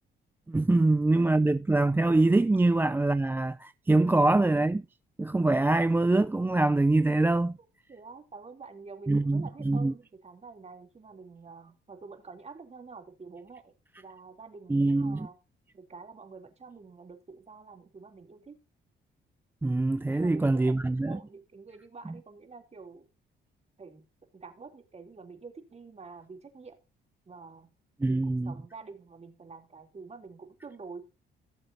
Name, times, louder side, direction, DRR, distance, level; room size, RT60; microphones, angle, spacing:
voice 1, 0.5-4.8 5.2-7.6 9.1-9.9 14.7-15.3 19.6-21.2 28.0-28.5, right 2 dB, 10° right, 0.4 m, -24 dB
voice 2, 7.9-15.4 15.7-18.6 20.1-23.1 23.8-24.0 24.3-26.8 27.3-27.7 28.0-31.0, right 4 dB, 35° right, 3.0 m, -47 dB
17.0 x 7.0 x 2.7 m
cardioid pair, 90°, 20 cm